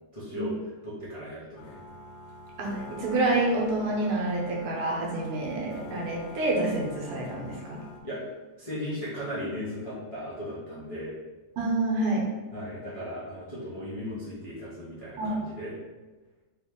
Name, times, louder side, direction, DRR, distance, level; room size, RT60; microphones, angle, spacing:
voice 1, 0.1-0.5 0.8-1.8 8.0-8.2 8.6-11.1 12.5-15.7, equal, 35° left, -10 dB, 0.5 m, -36 dB
sound 1, 1.6-8.0, left 2 dB, 70° left, 0.8 m, -44 dB
voice 2, 2.6-7.8 11.6-12.3 15.2-15.4, right 2 dB, 85° right, -2 dB, 1.9 m, -28 dB
3.9 x 3.0 x 3.6 m, 1.2 s
omnidirectional pair, 2.4 m